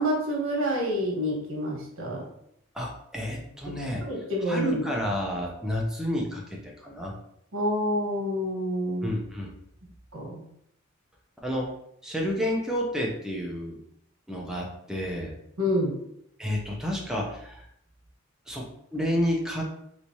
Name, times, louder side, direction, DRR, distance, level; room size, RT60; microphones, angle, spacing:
voice 1, 0.0-2.2 3.7-4.8 7.5-9.1 10.1-10.4 15.6-15.9, equal, 80° right, -2 dB, 1.3 m, -28 dB
voice 2, 2.7-4.1 4.5-7.2 9.0-9.5 11.4-11.7 12.0-13.8 14.3-15.3 16.4-17.7 18.5-19.6, equal, 5° right, -1 dB, 0.6 m, -30 dB
3.3 x 3.1 x 2.7 m, 0.73 s
head